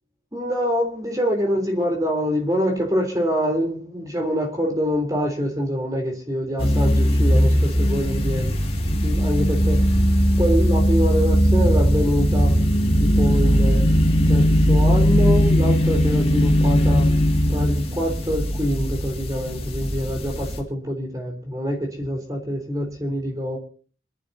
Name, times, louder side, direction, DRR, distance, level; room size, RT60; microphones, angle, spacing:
voice 1, 0.3-8.5 9.0-9.8 10.4-12.6 13.0-13.8 14.3-17.1 17.5-23.6, equal, 20° right, 3 dB, 3.6 m, -25 dB
sound 1, 6.6-20.6, equal, 30° left, 2.4 m, -19 dB
26.5 x 11.5 x 2.8 m, 0.41 s
head